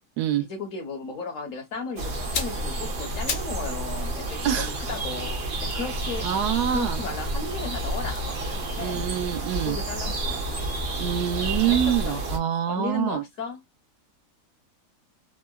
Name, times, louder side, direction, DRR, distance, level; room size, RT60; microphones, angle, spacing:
voice 1, 0.4-9.0 9.5-10.7 11.4-12.2 12.7-13.6, left 4 dB, 60° left, 1.0 m, -35 dB
sound 1, 2.0-12.4, right 1 dB, 50° right, 0.8 m, -30 dB
sound 2, 2.2-3.7 4.0-7.2 8.0-10.1 10.3-10.5, left 5 dB, 75° left, 1.4 m, -38 dB
voice 2, 4.4-4.7 6.2-7.0 8.8-9.8 11.0-13.2, right 10 dB, 75° right, 1.1 m, -25 dB
3.7 x 2.1 x 2.2 m
omnidirectional pair, 1.8 m